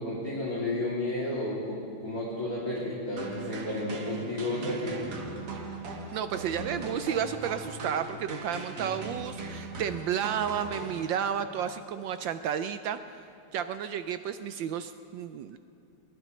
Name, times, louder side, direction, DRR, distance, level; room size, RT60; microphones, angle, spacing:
voice 1, 0.0-5.0, left 1 dB, 40° left, -8 dB, 3.2 m, -32 dB
sound 1, 3.2-11.5, right 2 dB, 50° right, 1.7 m, -39 dB
voice 2, 6.1-13.2 13.5-15.6, right 8 dB, 75° right, 10 dB, 1.1 m, -32 dB
22.0 x 20.5 x 3.1 m, 2.5 s
omnidirectional pair, 2.4 m